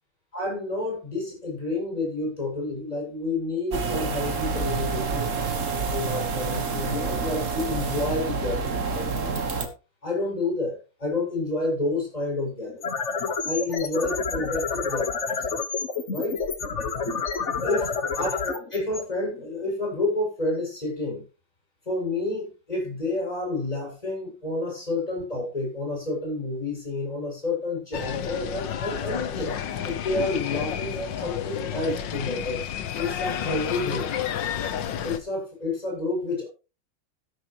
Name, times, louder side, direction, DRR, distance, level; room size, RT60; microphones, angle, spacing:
voice 1, 0.3-9.7 10.0-12.7 13.4-15.3 16.1-16.4 17.6-17.9 18.2-21.2 21.9-29.5 29.8-32.7 33.0-34.1 35.0-36.5, left 2 dB, 15° left, -1 dB, 7.2 m, -29 dB
sound 1, 3.7-9.7, right 4 dB, 40° right, 1.7 m, -28 dB
sound 2, 12.6-19.7, left 5 dB, 40° left, 1.6 m, -29 dB
sound 3, 27.9-35.2, left 9 dB, 65° left, 1.6 m, -31 dB
13.0 x 12.0 x 3.1 m, 0.31 s
omnidirectional pair, 2.3 m